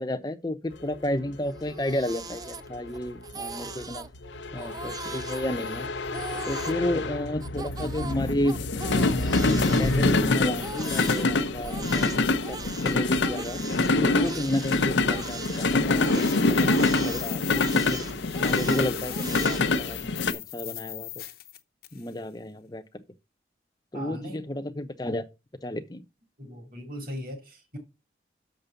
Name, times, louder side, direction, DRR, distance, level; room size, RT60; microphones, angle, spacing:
voice 1, 0.0-4.0 4.5-5.9 6.5-8.6 9.0-12.6 12.8-13.6 14.0-18.0 18.4-21.1 21.9-22.8 23.9-25.3 25.6-26.0, left 1 dB, 20° left, 0.7 m, -32 dB
sound 1, 0.8-20.3, left 3 dB, 85° left, 0.7 m, -26 dB
Crying sobbing, 1.5-3.0 3.2-4.1 4.6-6.8 7.4-11.2 11.6-19.7, right 5 dB, 20° right, 0.4 m, -40 dB
sound 2, 14.9-22.1, left 14 dB, 55° left, 0.8 m, -40 dB
voice 2, 23.9-24.4 26.4-27.8, equal, 50° right, 2.6 m, -38 dB
6.7 x 5.3 x 6.9 m
head